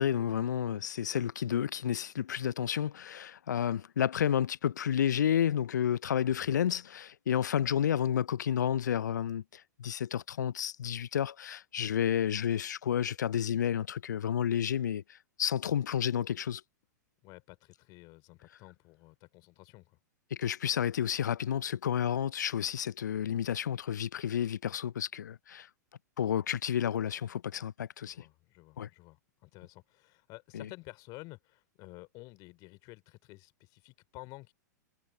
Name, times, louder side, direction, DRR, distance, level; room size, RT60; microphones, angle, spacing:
voice 1, 0.0-15.0 15.4-16.6 20.3-25.7 26.2-28.2 28.8-28.9 30.5-30.7, left 9 dB, 75° left, 0.4 m, -31 dB
voice 2, 6.3-6.6 17.2-20.0 28.0-34.5, left 22 dB, 40° left, 3.1 m, -51 dB
hypercardioid pair, 105°, 10 cm